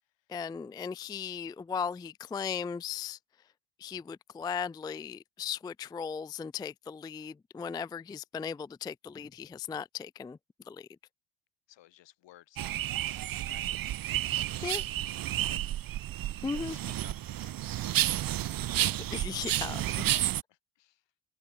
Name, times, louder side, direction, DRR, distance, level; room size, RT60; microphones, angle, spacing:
voice 1, 0.3-3.2 3.8-10.4 10.7-10.9 14.6-14.8 16.4-16.8 19.1-20.3, left 6 dB, 10° left, 0.3 m, -37 dB
voice 2, 11.7-13.9 14.6-14.9 15.4-16.0 16.5-19.0 19.8-21.0, left 15 dB, 70° left, 3.4 m, -58 dB
sound 1, 12.6-20.4, right 13 dB, 50° right, 0.9 m, -31 dB
open air
supercardioid pair, 75°, 45 cm